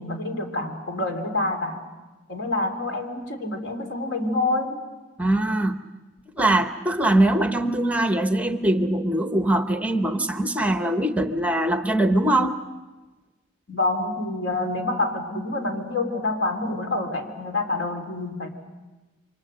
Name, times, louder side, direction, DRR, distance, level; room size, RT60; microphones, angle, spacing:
voice 1, 0.0-1.8 2.3-4.8 13.7-18.5, left 2 dB, 70° left, 3 dB, 3.5 m, -27 dB
voice 2, 5.2-5.9 6.4-12.6, right 1 dB, 5° right, 8 dB, 0.7 m, -22 dB
28.5 x 24.5 x 6.6 m, 1.2 s
head